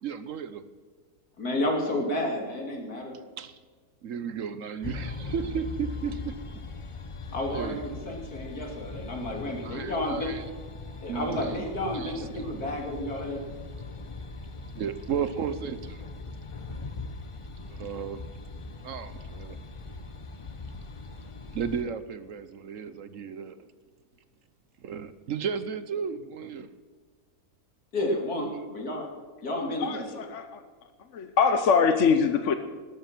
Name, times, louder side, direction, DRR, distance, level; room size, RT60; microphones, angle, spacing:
voice 1, 0.0-0.7 3.4-3.6 4.0-6.4 7.5-7.8 9.6-10.4 11.1-11.7 11.9-12.5 14.7-16.0 17.7-18.2 18.8-19.6 21.5-23.7 24.8-26.7, right 7 dB, 60° right, 13 dB, 1.1 m, -34 dB
voice 2, 1.4-3.1 7.3-10.3 11.0-13.4 27.9-29.1 29.4-30.2, left 1 dB, 75° left, 1 dB, 3.4 m, -31 dB
sound 1, 4.8-21.8, left 3 dB, 30° left, 0.7 m, -40 dB
voice 3, 29.8-30.6 31.1-32.6, left 6 dB, 55° left, 9 dB, 1.1 m, -23 dB
13.0 x 12.5 x 6.0 m, 1.5 s
omnidirectional pair, 1.6 m